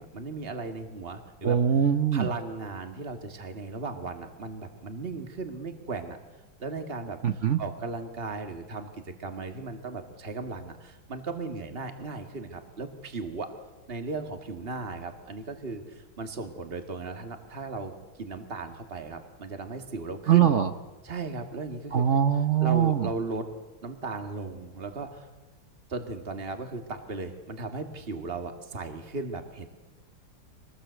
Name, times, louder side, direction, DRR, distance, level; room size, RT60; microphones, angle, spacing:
voice 1, 0.0-1.6 2.1-6.2 6.6-7.2 7.6-13.5 13.9-17.9 18.2-20.5 21.0-22.1 22.6-23.5 23.8-25.3 25.9-29.7, right 3 dB, 30° right, 6 dB, 2.1 m, -36 dB
voice 2, 1.4-2.3 7.2-7.6 20.3-20.7 21.9-23.1, right 9 dB, 50° right, 10 dB, 0.9 m, -22 dB
24.5 x 19.5 x 8.1 m, 1.1 s
omnidirectional pair, 2.1 m